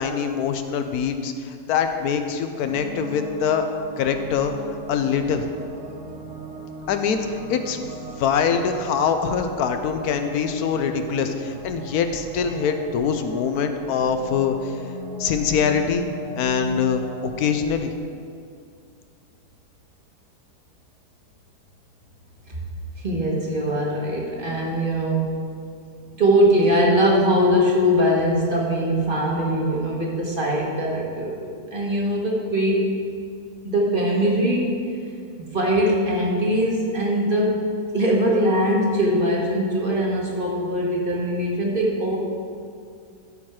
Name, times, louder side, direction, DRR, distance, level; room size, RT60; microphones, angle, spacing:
voice 1, 0.0-3.6 4.0-4.5 4.9-5.4 6.9-7.8 8.2-14.7 15.2-16.1 16.4-17.9, left 6 dB, 70° left, 7 dB, 1.1 m, -23 dB
sound 1, 2.6-17.5, right 1 dB, 60° right, 0.4 m, -38 dB
voice 2, 23.0-25.3 26.2-32.9 33.6-34.7 35.4-37.6 37.9-42.2, equal, 35° right, -3 dB, 1.4 m, -21 dB
13.0 x 4.5 x 4.7 m, 2.3 s
omnidirectional pair, 1.7 m